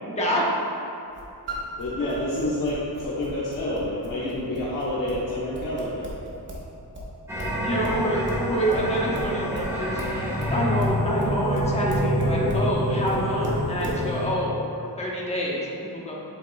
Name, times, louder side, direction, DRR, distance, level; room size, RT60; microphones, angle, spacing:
voice 1, 0.0-0.4 2.0-2.1 7.6-10.1 10.5-16.2, equal, 15° left, -5 dB, 1.1 m, -27 dB
sound 1, 1.1-6.7 6.9-12.7 13.1-14.0, right 1 dB, 30° right, 1.1 m, -37 dB
Piano, 1.5-6.9 7.6-7.7, right 2 dB, 75° right, 1.6 m, -42 dB
voice 2, 1.8-6.1, left 1 dB, 55° left, -9 dB, 1.1 m, -28 dB
sound 2, 7.3-14.3, equal, 5° right, 1.2 m, -27 dB
8.1 x 7.3 x 2.3 m, 2.7 s
wide cardioid pair, 170°, 40 cm